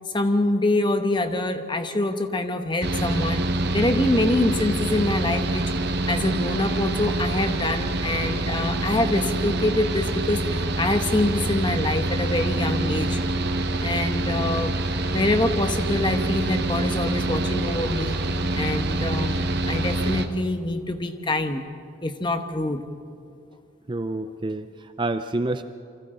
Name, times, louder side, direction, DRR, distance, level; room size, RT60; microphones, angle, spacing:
voice 1, 0.1-3.4 3.7-5.7 6.1-13.2 13.8-14.8 15.1-18.2 18.5-21.6 22.0-22.8, left 2 dB, 20° left, 7 dB, 1.0 m, -25 dB
Mechanical fan, 2.8-20.3, right 2 dB, 55° right, 1.1 m, -26 dB
voice 2, 23.9-25.6, right 2 dB, 25° right, 9 dB, 0.5 m, -28 dB
29.5 x 24.0 x 3.8 m, 2.4 s
head